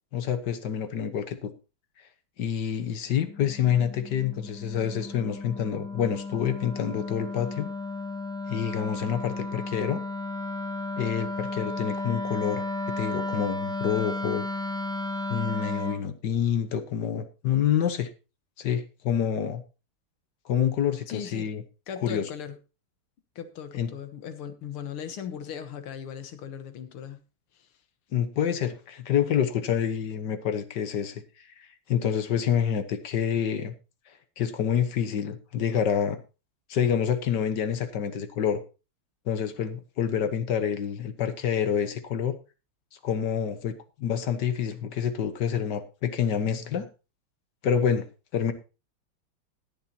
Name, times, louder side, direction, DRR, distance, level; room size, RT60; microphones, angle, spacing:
voice 1, 0.1-1.5 2.4-7.7 8.5-10.0 11.0-12.6 13.0-14.5 15.3-18.1 18.6-19.6 20.4-21.6 22.0-22.2 23.8-23.9 28.1-33.7 34.4-36.2 36.7-38.6 39.3-42.3 43.0-43.7 44.0-46.9 47.6-48.0 48.3-48.5, left 8 dB, 60° left, 1.5 m, -27 dB
Wind instrument woodwind instrument, 3.1-16.1, left 2 dB, 5° left, 0.4 m, -34 dB
voice 2, 21.1-21.5 21.9-22.6 23.4-27.2 27.5-27.7, left 8 dB, 85° left, 2.1 m, -38 dB
20.5 x 7.1 x 2.8 m
omnidirectional pair, 2.3 m